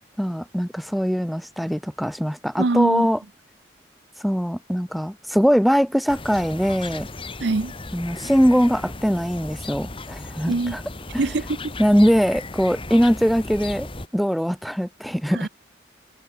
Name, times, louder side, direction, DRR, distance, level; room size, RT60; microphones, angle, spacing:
voice 1, 0.2-3.2 4.2-7.1 7.9-10.8 11.1-11.3 11.8-15.5, equal, ahead, 0.4 m, -21 dB
voice 2, 2.6-3.1 7.4-7.7 10.5-10.8 11.2-11.6 15.3-15.5, right 3 dB, 70° right, 0.7 m, -23 dB
sound 1, 6.1-14.1, left 2 dB, 30° left, 1.8 m, -36 dB
head